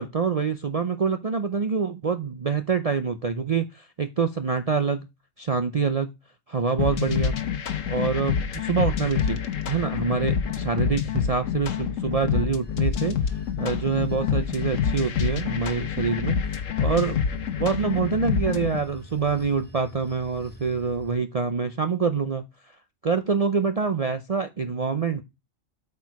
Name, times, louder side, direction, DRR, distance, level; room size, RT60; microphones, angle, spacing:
voice 1, 0.0-5.1 5.4-6.1 6.5-7.4 7.9-9.4 9.7-13.2 13.6-16.4 16.8-17.2 17.6-22.4 23.0-25.2, right 5 dB, 65° right, 0.3 m, -26 dB
sound 1, 6.8-18.8, left 7 dB, 70° left, 1.3 m, -27 dB
Bell / Train, 12.6-21.1, left 1 dB, 10° left, 0.5 m, -45 dB
8.4 x 4.5 x 4.6 m
omnidirectional pair, 1.4 m